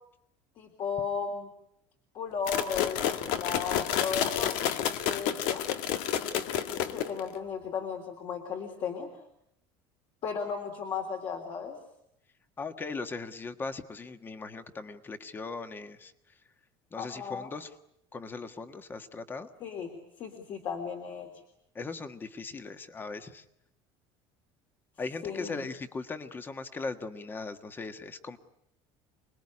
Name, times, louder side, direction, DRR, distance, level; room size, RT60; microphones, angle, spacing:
voice 1, 0.6-1.5 2.1-4.5 5.0-5.6 6.7-9.1 10.2-11.8 17.0-17.5 19.6-21.3 25.2-25.7, left 6 dB, 40° left, 4 dB, 3.5 m, -35 dB
sound 1, 2.5-7.3, left 10 dB, 75° left, 1.8 m, -30 dB
voice 2, 12.6-16.1 16.9-17.7 18.1-19.5 21.7-23.4 25.0-28.4, left 4 dB, 20° left, 9 dB, 1.5 m, -39 dB
29.0 x 20.5 x 9.8 m, 0.80 s
cardioid pair, 155°, 12 cm